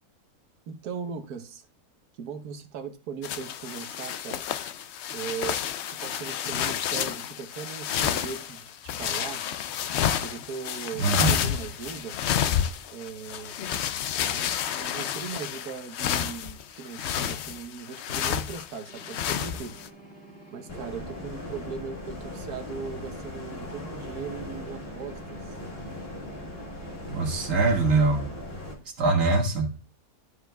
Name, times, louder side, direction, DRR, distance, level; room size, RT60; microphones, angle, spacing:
voice 1, 0.7-1.7 2.1-4.5 5.1-5.6 5.9-9.4 10.2-12.2 12.9-13.6 14.3-19.8 20.5-25.6, right 6 dB, 85° right, 1.4 m, -38 dB
sound 1, 3.2-19.9, left 9 dB, 65° left, 0.7 m, -30 dB
voice 2, 11.0-11.3 27.1-28.3 29.0-29.8, right 3 dB, 60° right, 1.8 m, -23 dB
sound 2, 18.9-27.8, right 2 dB, 5° left, 2.0 m, -49 dB
sound 3, 20.7-28.7, left 1 dB, 40° left, 1.6 m, -39 dB
12.5 x 4.8 x 2.3 m
omnidirectional pair, 1.6 m